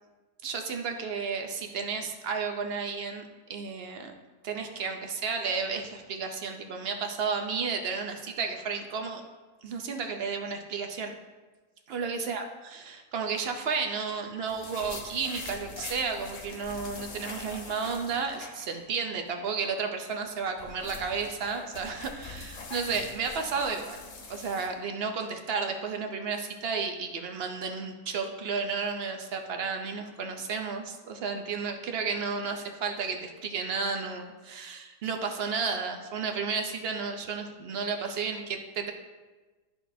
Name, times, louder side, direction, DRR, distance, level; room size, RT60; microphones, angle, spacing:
voice 1, 0.4-3.2 3.5-4.1 4.4-9.2 9.6-11.1 11.9-24.0 24.3-38.9, right 5 dB, 55° right, 4 dB, 0.8 m, -32 dB
sound 1, 14.5-19.0 19.3-19.4 20.3-24.7, left 3 dB, 65° left, 1.2 m, -43 dB
12.5 x 4.3 x 2.7 m, 1.3 s
omnidirectional pair, 1.5 m